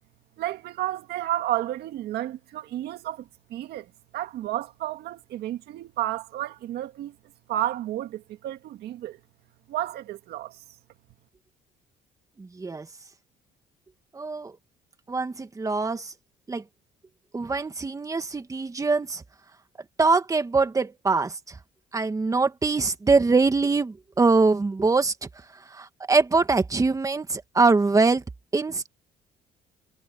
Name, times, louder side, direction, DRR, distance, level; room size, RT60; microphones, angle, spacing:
voice 1, 0.4-3.9 4.1-7.1 7.5-9.2 9.7-10.6, right 13 dB, 75° right, 1.8 m, -31 dB
voice 2, 12.4-12.9 14.1-14.6 15.1-16.1 16.5-16.6 17.3-19.2 20.0-21.6 21.9-25.1 25.7-28.2 28.5-28.9, right 4 dB, 20° right, 1.8 m, -23 dB
cardioid pair, 110°, 17 cm